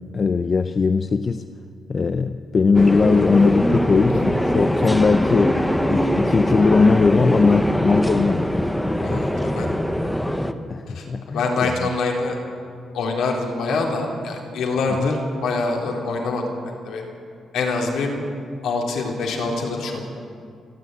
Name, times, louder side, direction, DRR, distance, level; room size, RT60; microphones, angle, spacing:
voice 1, 0.1-1.4 1.9-8.5 9.0-9.5 10.7-11.9 15.0-15.2, left 4 dB, 30° left, 10 dB, 0.5 m, -20 dB
sound 1, 2.7-10.5, equal, 5° left, 0.8 m, -22 dB
voice 2, 9.0-9.7 10.9-12.4 12.9-16.4 16.8-17.0 17.5-18.1 18.6-20.0, left 3 dB, 85° left, 0 dB, 3.9 m, -25 dB
27.5 x 11.0 x 9.4 m, 2.3 s
cardioid pair, 180°, 0 cm